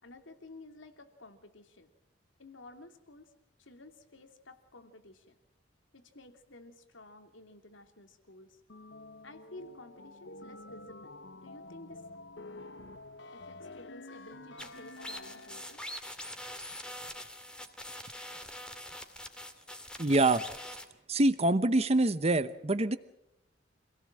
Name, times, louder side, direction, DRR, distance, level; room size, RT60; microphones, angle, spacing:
voice 1, 0.0-1.9 2.4-3.3 3.6-5.4 5.9-8.6 9.2-12.0 13.3-15.8, left 2 dB, 90° left, 7 dB, 2.9 m, -52 dB
sound 1, 8.7-16.0, left 2 dB, 70° left, 0.9 m, -49 dB
sound 2, 14.6-20.9, left 1 dB, 5° left, 2.3 m, -44 dB
voice 2, 20.0-20.5 21.1-23.0, right 2 dB, 35° right, 12 dB, 0.9 m, -25 dB
26.5 x 18.0 x 7.6 m, 0.79 s
head